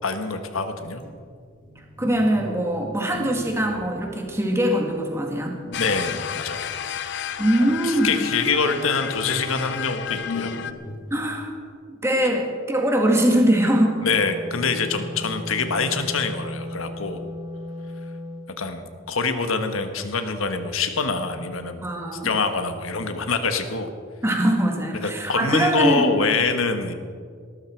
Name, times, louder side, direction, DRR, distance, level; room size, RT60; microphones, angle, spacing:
voice 1, 0.0-1.0 5.8-6.7 7.6-10.5 14.0-17.2 18.6-23.9 24.9-26.9, left 4 dB, 75° left, 7 dB, 1.4 m, -25 dB
sound 1, 0.7-2.7 3.1-5.0 5.6-6.6 8.3-11.3, left 2 dB, 40° left, 1.8 m, -38 dB
voice 2, 2.0-5.6 7.4-8.3 11.1-11.6 11.9-14.0 21.8-22.3 24.2-26.0, right 1 dB, 15° right, 1 dB, 2.0 m, -22 dB
sound 2, 5.7-10.7, left 9 dB, 55° left, 0.7 m, -32 dB
Wind instrument woodwind instrument, 13.3-18.5, equal, 35° right, 3.9 m, -36 dB
19.0 x 13.0 x 4.6 m, 2.1 s
head